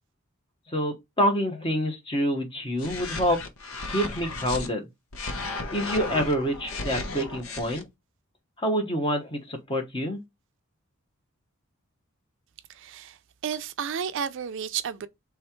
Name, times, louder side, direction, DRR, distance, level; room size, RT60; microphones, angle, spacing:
voice 1, 0.7-3.4 3.9-4.9 5.7-7.8 8.6-10.2, equal, 25° left, 1.1 m, -27 dB
sound 1, 2.8-4.7 5.1-7.8, left 3 dB, 85° left, 0.9 m, -34 dB
voice 2, 12.7-13.2 13.4-15.1, right 7 dB, 60° right, 0.4 m, -32 dB
3.4 x 3.3 x 4.4 m
head